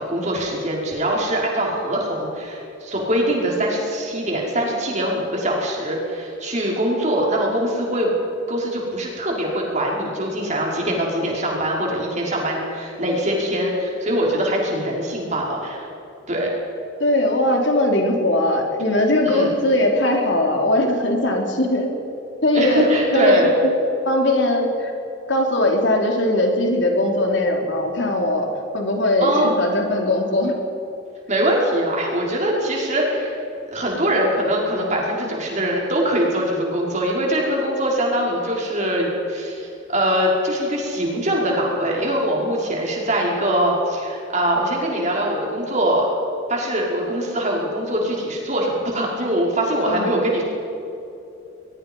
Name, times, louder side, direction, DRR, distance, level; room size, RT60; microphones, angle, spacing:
voice 1, 0.0-8.1 8.5-15.8 16.3-16.5 19.2-19.5 22.5-23.5 29.2-29.5 31.3-33.4 33.7-46.1 46.5-50.4, right 1 dB, 35° right, -2 dB, 5.5 m, -22 dB
voice 2, 17.0-21.9 22.4-23.7 24.1-24.9 25.3-28.5 28.7-30.6 49.8-50.2, left 1 dB, 65° left, 2 dB, 3.6 m, -20 dB
23.0 x 22.0 x 5.6 m, 2.8 s
head